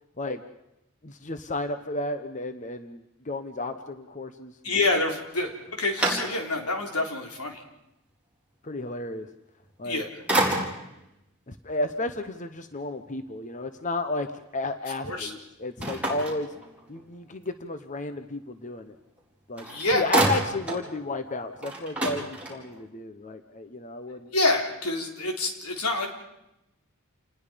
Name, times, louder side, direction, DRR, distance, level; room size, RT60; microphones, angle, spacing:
voice 1, 1.0-4.8 8.6-9.3 9.8-10.0 11.5-14.3 14.5-16.5 16.9-19.0 19.5-19.7 19.9-24.3, left 2 dB, 35° left, 9 dB, 1.0 m, -33 dB
voice 2, 4.6-7.6 9.8-10.1 15.0-15.3 19.7-20.0 24.3-26.1, left 2 dB, 85° left, 3 dB, 3.8 m, -27 dB
sound 1, 5.3-6.8 7.3-7.4 9.6-9.9 10.3-11.0 15.8-17.1 19.2-19.3 19.6-20.9 21.2-21.3 21.6-22.9, right 1 dB, 5° right, 4.6 m, -29 dB
29.0 x 20.0 x 5.2 m, 0.88 s
head